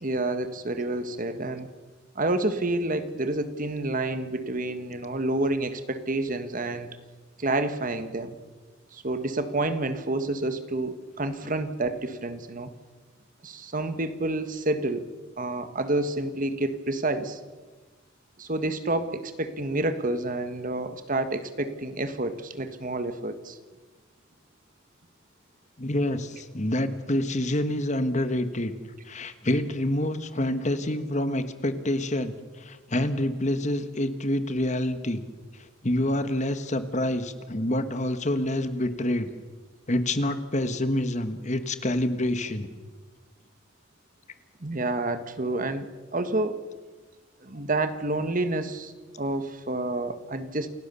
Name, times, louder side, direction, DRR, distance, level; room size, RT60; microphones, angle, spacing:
voice 1, 0.0-1.7 2.1-6.9 7.4-8.3 8.9-12.7 13.4-15.1 15.4-17.4 18.4-23.6 44.6-45.9 46.1-46.6 47.4-50.7, right 2 dB, 40° right, 10 dB, 1.5 m, -29 dB
voice 2, 25.8-28.7 29.0-35.2 35.8-39.3 39.9-42.7, left 1 dB, 35° left, 10 dB, 1.4 m, -27 dB
28.5 x 17.5 x 7.0 m, 1.3 s
head